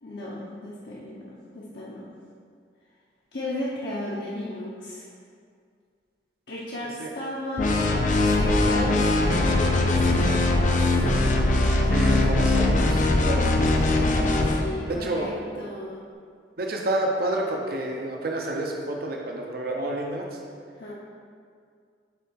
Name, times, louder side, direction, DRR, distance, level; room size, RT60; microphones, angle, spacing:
voice 1, 0.0-2.1 3.3-5.0 6.5-7.8 8.4-9.1 9.4-11.1 14.6-16.0 20.8-20.9, left 1 dB, 60° left, -8 dB, 0.9 m, -35 dB
sound 1, 7.6-14.6, left 2 dB, 45° left, 0.6 m, -21 dB
voice 2, 11.9-13.9 14.9-15.3 16.6-20.3, right 1 dB, 55° right, 0 dB, 0.7 m, -29 dB
6.8 x 4.1 x 4.6 m, 2.2 s
head